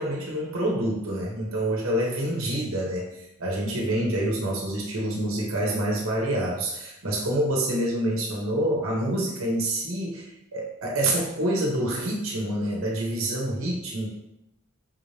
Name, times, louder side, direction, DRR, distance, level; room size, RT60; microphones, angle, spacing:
voice 1, 0.0-14.2, right 1 dB, 85° right, -2 dB, 1.0 m, -27 dB
5.6 x 2.8 x 3.3 m, 0.82 s
head